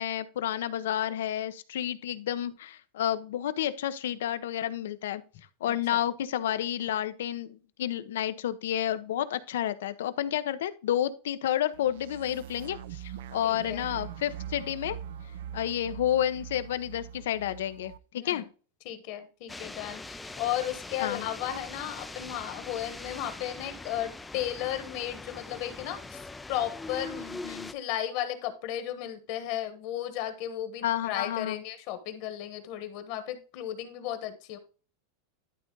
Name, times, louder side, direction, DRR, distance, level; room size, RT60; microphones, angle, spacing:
voice 1, 0.0-5.2 5.6-15.0 15.5-18.5 21.0-21.3 27.2-27.7 30.8-31.6, left 11 dB, 90° left, 0.8 m, -30 dB
sound 1, 11.7-18.0, right 9 dB, 65° right, 0.4 m, -42 dB
voice 2, 13.4-13.8 18.1-18.4 18.8-27.2 27.7-34.6, left 11 dB, 40° left, 1.2 m, -34 dB
sound 2, 19.5-27.7, left 2 dB, 5° left, 0.3 m, -42 dB
11.5 x 4.1 x 3.8 m
supercardioid pair, 175°, 0 cm